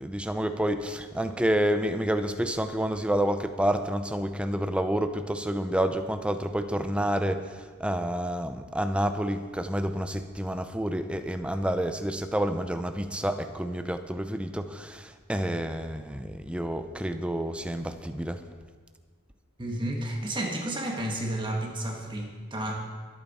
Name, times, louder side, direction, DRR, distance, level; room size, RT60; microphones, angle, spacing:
voice 1, 0.0-18.4, right 1 dB, 5° right, 8 dB, 0.6 m, -29 dB
voice 2, 19.6-22.8, right 1 dB, 20° right, 1 dB, 1.5 m, -31 dB
23.5 x 8.9 x 4.3 m, 1.5 s
head